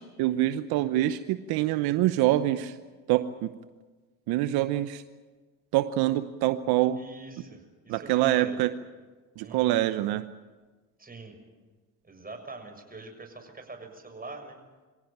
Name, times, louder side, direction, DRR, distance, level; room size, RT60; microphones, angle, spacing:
voice 1, 0.0-2.8 3.1-3.5 4.3-5.0 5.7-7.0 7.9-8.7 9.4-10.2, right 14 dB, 75° right, 11 dB, 1.0 m, -25 dB
voice 2, 7.0-8.6 9.4-9.8 11.0-11.4 12.0-14.6, right 3 dB, 25° right, 5 dB, 6.7 m, -44 dB
25.5 x 16.5 x 9.0 m, 1.3 s
hypercardioid pair, 60°, 38 cm